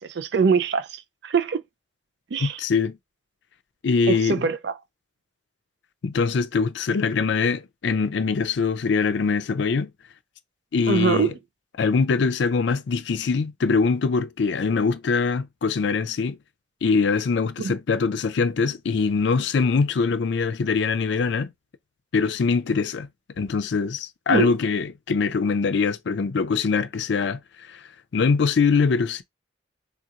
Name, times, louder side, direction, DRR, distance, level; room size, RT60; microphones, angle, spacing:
voice 1, 0.0-1.6 2.3-2.6 4.1-4.7 10.9-11.3 17.6-17.8 24.3-24.5, right 5 dB, 60° right, 0.4 m, -23 dB
voice 2, 2.4-3.0 3.8-4.4 6.0-9.9 10.7-11.3 11.8-16.4 16.8-21.5 22.1-23.1 23.4-27.8 28.1-29.2, left 5 dB, 65° left, 0.4 m, -23 dB
3.7 x 2.9 x 2.4 m
head